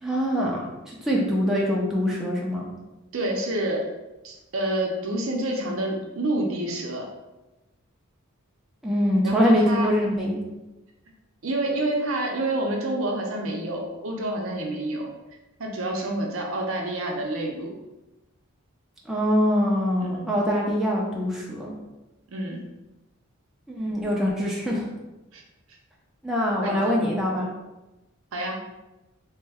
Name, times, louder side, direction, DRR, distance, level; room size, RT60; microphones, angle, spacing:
voice 1, 0.0-2.7 8.8-10.4 19.1-21.7 23.7-24.8 26.2-27.5, equal, ahead, -4 dB, 0.5 m, -24 dB
voice 2, 3.1-3.8 4.2-7.1 9.2-9.9 11.4-15.1 15.6-17.7 20.0-20.3 22.3-22.6 25.3-25.4 26.6-27.0 28.3-28.6, right 1 dB, 70° right, 0 dB, 0.6 m, -28 dB
3.1 x 2.2 x 3.4 m, 1.0 s
head